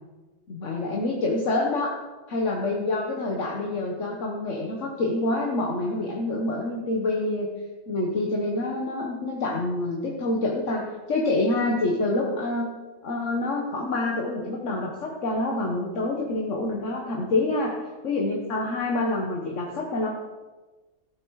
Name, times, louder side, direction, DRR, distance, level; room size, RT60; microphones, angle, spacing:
voice 1, 0.5-2.0 2.3-7.5 7.9-12.7 13.0-17.8 18.0-20.1, left 2 dB, 70° left, -1 dB, 1.7 m, -27 dB
15.0 x 9.1 x 4.8 m, 1.3 s
omnidirectional pair, 1.3 m